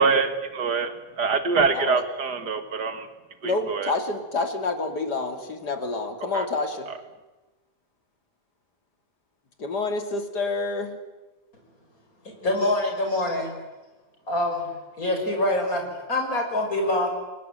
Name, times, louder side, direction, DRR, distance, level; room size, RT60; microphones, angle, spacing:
voice 1, 0.0-3.1 3.4-3.9 6.3-6.5, right 5 dB, 80° right, 9 dB, 2.6 m, -24 dB
voice 2, 3.4-6.9 9.6-11.0, left 3 dB, 85° left, 7 dB, 3.3 m, -28 dB
voice 3, 12.2-13.5 14.3-14.7 15.0-17.1, left 1 dB, 60° left, 2 dB, 6.4 m, -25 dB
29.0 x 21.5 x 9.1 m, 1.2 s
omnidirectional pair, 1.7 m